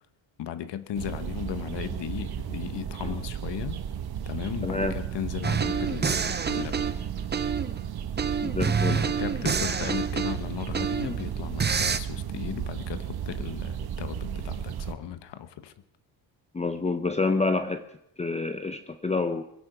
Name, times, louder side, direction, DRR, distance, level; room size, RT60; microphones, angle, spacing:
voice 1, 0.4-3.8 4.3-6.9 8.9-15.7, left 10 dB, 65° left, 12 dB, 1.3 m, -36 dB
sound 1, 0.9-14.9, right 9 dB, 55° right, 1.4 m, -34 dB
voice 2, 4.6-5.0 8.4-9.0 16.5-17.8 18.2-19.4, left 3 dB, 15° left, 9 dB, 0.7 m, -28 dB
sound 2, 5.4-7.8 8.2-11.2 11.6-12.0, right 6 dB, 20° right, 0.8 m, -27 dB
21.5 x 10.0 x 6.1 m, 0.79 s
cardioid pair, 110°, 46 cm